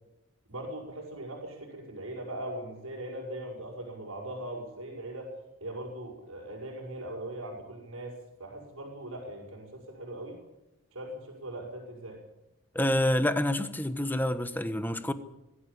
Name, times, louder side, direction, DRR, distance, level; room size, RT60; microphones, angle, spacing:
voice 1, 0.5-5.4 5.6-8.1 8.4-10.4 10.9-12.2, right 1 dB, 85° right, -4 dB, 5.9 m, -40 dB
voice 2, 12.7-15.1, left 1 dB, 10° left, 10 dB, 1.2 m, -27 dB
21.0 x 14.5 x 8.6 m, 0.95 s
head